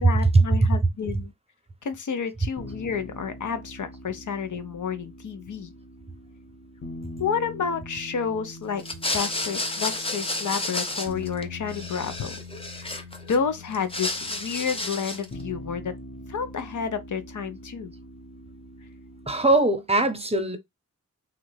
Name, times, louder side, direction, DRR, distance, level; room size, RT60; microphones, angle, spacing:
voice 1, 0.0-1.3 1.8-5.7 7.2-8.8 9.1-12.4 12.7-15.9 16.3-17.9, left 6 dB, 80° left, 0.6 m, -30 dB
sound 1, 2.6-19.6, left 1 dB, 45° left, 1.0 m, -43 dB
sound 2, 8.8-11.4 11.7-13.4 13.7-15.3, left 2 dB, 20° left, 0.5 m, -31 dB
voice 2, 19.3-20.6, right 2 dB, 20° right, 0.6 m, -20 dB
3.2 x 2.4 x 3.1 m
wide cardioid pair, 90°, 30 cm